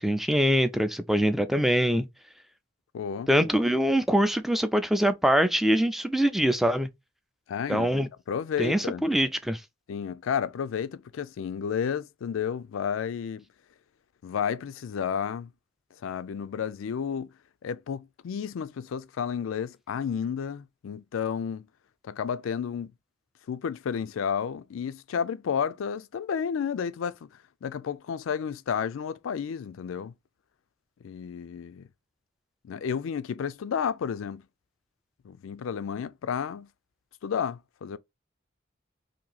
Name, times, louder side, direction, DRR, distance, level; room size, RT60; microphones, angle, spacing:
voice 1, 0.0-2.1 3.3-6.9 7.7-8.1 8.6-9.6, equal, ahead, 0.3 m, -23 dB
voice 2, 2.9-3.3 7.5-7.9 8.3-9.0 9.9-13.4 14.2-15.5 16.0-17.3 17.6-21.7 22.0-22.9 23.5-27.3 27.6-30.1 31.0-31.9 32.6-34.4 35.2-36.7 37.2-38.0, left 7 dB, 80° left, 0.4 m, -31 dB
2.9 x 2.6 x 3.8 m
head